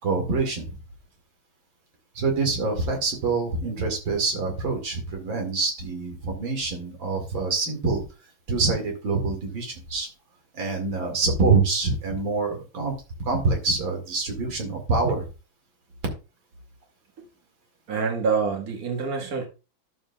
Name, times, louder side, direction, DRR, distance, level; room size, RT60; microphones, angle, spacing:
voice 1, 0.0-0.8 2.1-8.0 8.5-10.1 10.5-12.9 13.2-15.3, right 3 dB, 75° right, 3 dB, 2.9 m, -25 dB
voice 2, 17.9-19.5, right 5 dB, 50° right, 2 dB, 2.1 m, -26 dB
12.5 x 7.2 x 2.3 m, 0.31 s
omnidirectional pair, 2.1 m